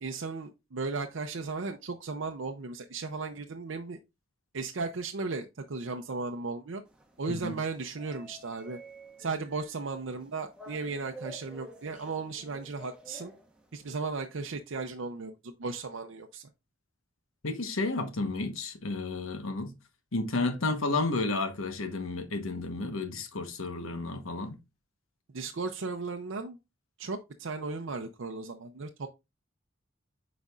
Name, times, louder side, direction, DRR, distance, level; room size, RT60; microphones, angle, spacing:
voice 1, 0.0-4.0 4.5-6.8 7.2-8.8 9.2-13.3 13.7-16.5 25.3-26.6 27.0-29.1, right 4 dB, 65° right, 0.6 m, -36 dB
sound 1, 6.9-13.9, equal, 5° right, 1.1 m, -50 dB
voice 2, 17.4-19.7 20.1-24.6, left 3 dB, 80° left, 1.2 m, -32 dB
8.0 x 5.1 x 2.4 m
head